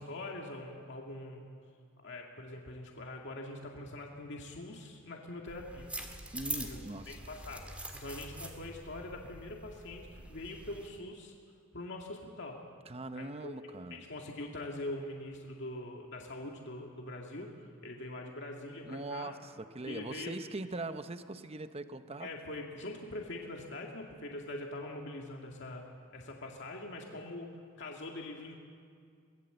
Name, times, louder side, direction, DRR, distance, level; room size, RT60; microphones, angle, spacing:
voice 1, 0.0-1.5 2.0-5.9 6.4-6.8 7.1-11.3 11.7-12.6 13.2-13.6 13.9-17.6 17.8-19.4 19.9-20.4 22.2-28.6, left 2 dB, 60° left, 0 dB, 2.1 m, -43 dB
sound 1, 5.5-10.9, right 1 dB, 5° right, 2.0 m, -44 dB
voice 2, 6.3-7.3 12.9-14.1 18.9-22.3, right 2 dB, 30° right, 10 dB, 0.8 m, -41 dB
23.5 x 19.0 x 7.9 m, 2.2 s
head